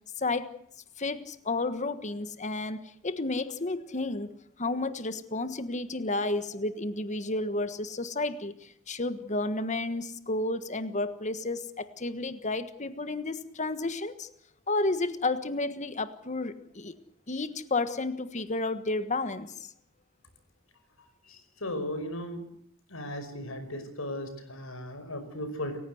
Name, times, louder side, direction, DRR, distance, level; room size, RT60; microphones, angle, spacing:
voice 1, 0.2-0.5 1.0-4.3 4.6-14.3 14.7-17.0 17.3-19.7, left 2 dB, 35° left, 12 dB, 1.4 m, -31 dB
voice 2, 21.0-22.4 22.9-25.8, left 1 dB, 80° left, 9 dB, 5.4 m, -37 dB
29.5 x 15.5 x 8.0 m, 0.69 s
head